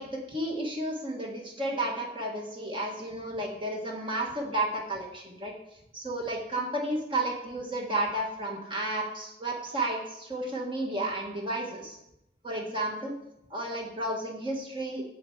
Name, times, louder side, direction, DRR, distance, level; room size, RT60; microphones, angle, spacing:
voice 1, 0.0-5.5 5.9-12.0 12.4-13.1 13.5-15.0, right 1 dB, 30° right, 0 dB, 1.5 m, -32 dB
10.0 x 4.5 x 7.9 m, 0.84 s
head